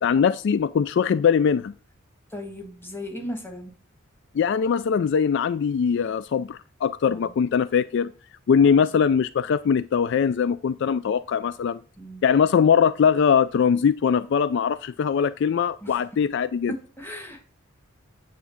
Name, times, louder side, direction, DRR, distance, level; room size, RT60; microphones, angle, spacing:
voice 1, 0.0-1.7 4.3-8.1 8.5-11.8 12.2-16.7, left 7 dB, 60° left, 0.3 m, -21 dB
voice 2, 2.3-3.7 7.1-7.3 8.7-8.8 12.0-12.2 15.8-16.0 16.7-17.4, left 1 dB, 10° left, 1.7 m, -36 dB
9.3 x 3.7 x 7.1 m
head